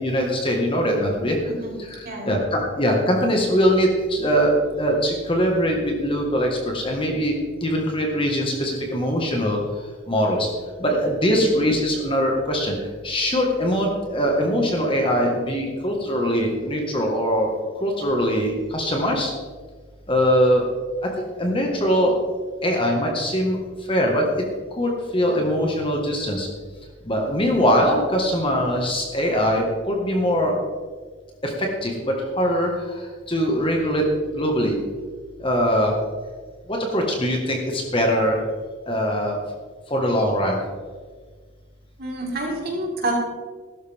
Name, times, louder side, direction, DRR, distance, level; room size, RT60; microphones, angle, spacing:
voice 1, 0.0-1.4 2.0-7.4 7.6-9.6 10.1-10.5 10.8-12.8 13.0-17.5 17.8-19.3 20.1-20.6 21.0-22.2 22.6-23.6 23.9-24.3 24.7-26.5 27.1-30.5 31.4-34.8 35.4-35.9 36.7-38.4 38.9-39.4 39.9-40.6, equal, 25° left, 0 dB, 1.7 m, -22 dB
voice 2, 42.0-43.1, right 1 dB, 45° right, -4 dB, 4.4 m, -28 dB
15.5 x 12.5 x 3.6 m, 1.5 s
head